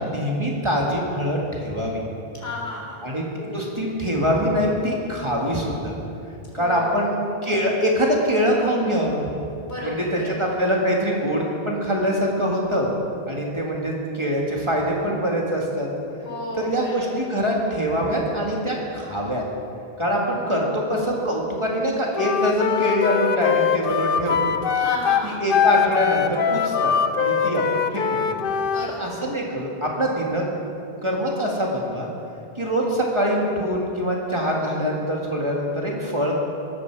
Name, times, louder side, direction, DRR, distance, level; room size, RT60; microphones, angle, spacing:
voice 1, 0.0-2.0 3.0-5.9 6.5-9.2 9.8-12.9 13.3-15.9 16.6-19.4 20.0-24.6 25.2-28.6 28.8-30.5 31.0-32.1 32.6-36.4, equal, 30° right, -2 dB, 2.2 m, -24 dB
voice 2, 2.3-3.2 6.5-7.0 9.7-10.5 16.2-17.2 24.8-25.4 28.6-29.2, left 1 dB, 85° left, -4 dB, 4.3 m, -33 dB
Wind instrument woodwind instrument, 22.1-28.9, left 7 dB, 65° left, 0.8 m, -22 dB
17.5 x 14.0 x 4.8 m, 2.7 s
omnidirectional pair, 1.0 m